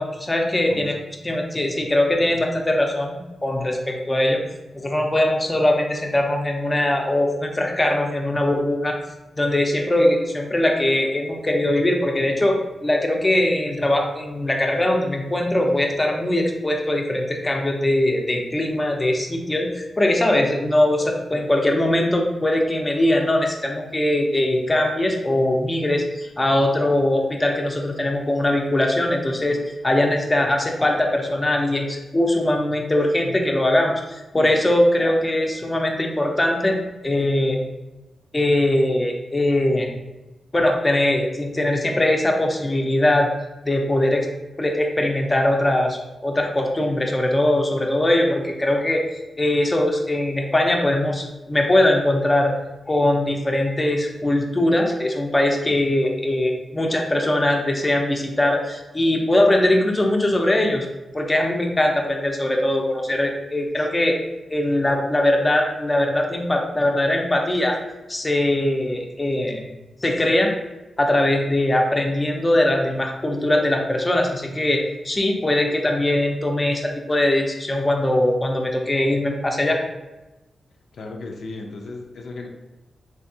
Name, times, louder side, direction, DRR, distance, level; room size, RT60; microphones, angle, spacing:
voice 1, 0.0-4.4 4.7-9.0 9.4-36.8 37.0-37.6 38.3-39.9 40.5-43.3 43.7-44.3 44.6-49.0 49.4-52.5 52.9-60.9 61.1-64.2 64.5-67.8 68.1-69.6 70.0-70.5 71.0-79.8, left 1 dB, 20° left, 1 dB, 0.5 m, -21 dB
voice 2, 80.9-82.5, left 3 dB, 75° left, 2 dB, 0.4 m, -35 dB
3.4 x 2.7 x 2.6 m, 1.0 s
cardioid pair, 85°, 0 cm